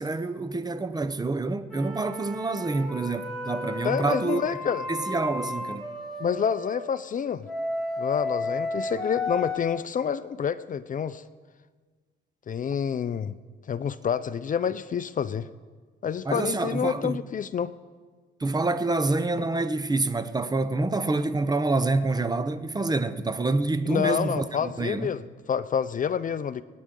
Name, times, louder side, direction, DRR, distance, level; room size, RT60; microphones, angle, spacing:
voice 1, 0.0-4.4 4.9-5.8 16.3-17.2 18.4-25.1, right 3 dB, 20° right, 0.8 m, -27 dB
sound 1, 1.7-6.7 7.5-9.6, left 2 dB, ahead, 2.9 m, -33 dB
voice 2, 3.8-4.8 6.2-7.5 8.0-11.2 12.5-13.4 13.7-15.5 16.0-17.7 23.9-25.2 25.5-26.6, left 7 dB, 40° left, 0.5 m, -28 dB
27.0 x 9.4 x 3.8 m
cardioid pair, 90°, 20 cm